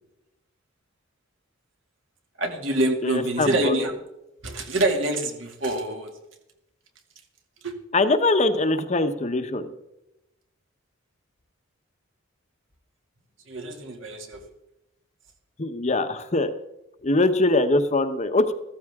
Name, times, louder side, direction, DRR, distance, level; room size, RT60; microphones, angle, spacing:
voice 1, 2.4-3.9 4.4-6.1 7.6-7.7 13.5-14.4, right 1 dB, 65° right, 3 dB, 2.4 m, -26 dB
voice 2, 3.0-3.8 7.9-9.7 15.6-16.5 17.0-18.5, left 2 dB, 35° left, 9 dB, 0.9 m, -22 dB
15.0 x 14.5 x 3.6 m, 0.90 s
head